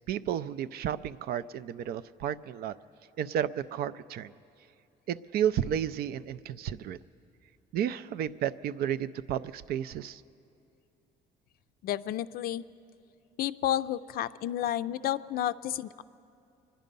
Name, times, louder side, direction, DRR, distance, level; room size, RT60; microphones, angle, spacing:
voice 1, 0.1-2.7 3.2-4.3 5.1-7.0 7.7-10.2, right 10 dB, 65° right, 13 dB, 0.4 m, -32 dB
voice 2, 11.8-12.6 13.4-16.0, left 12 dB, 60° left, 14 dB, 0.4 m, -31 dB
25.0 x 10.0 x 5.3 m, 2.6 s
cardioid pair, 110°, 17 cm